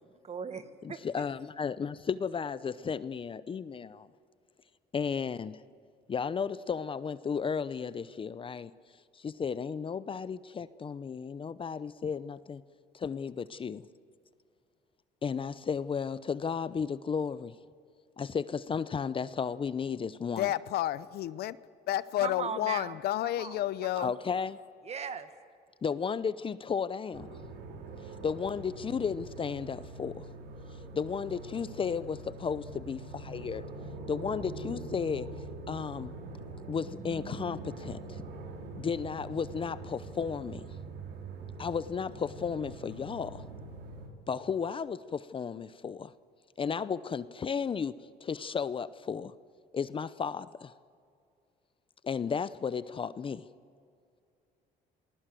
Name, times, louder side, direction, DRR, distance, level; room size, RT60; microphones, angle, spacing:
voice 1, 0.2-1.0 22.2-23.0 23.4-23.6 24.0-24.1 24.8-25.3, right 6 dB, 40° right, 10 dB, 1.7 m, -38 dB
voice 2, 0.8-4.1 4.9-5.6 6.1-8.7 9.1-12.6 12.9-13.9 15.2-17.6 18.2-20.5 24.0-24.6 25.8-27.3 28.2-30.3 30.9-33.6 34.1-35.3 35.7-36.1 36.7-38.2 38.8-40.8 41.6-43.4 44.3-46.1 46.6-49.3 49.7-50.7 52.0-53.4, left 6 dB, 30° left, 16 dB, 0.7 m, -34 dB
voice 3, 20.4-21.6 21.9-24.1, left 13 dB, 70° left, 17 dB, 0.7 m, -31 dB
sound 1, 27.1-44.1, right 3 dB, 85° right, 3.5 m, -44 dB
28.0 x 20.0 x 7.7 m, 2.3 s
cardioid pair, 110°, 17 cm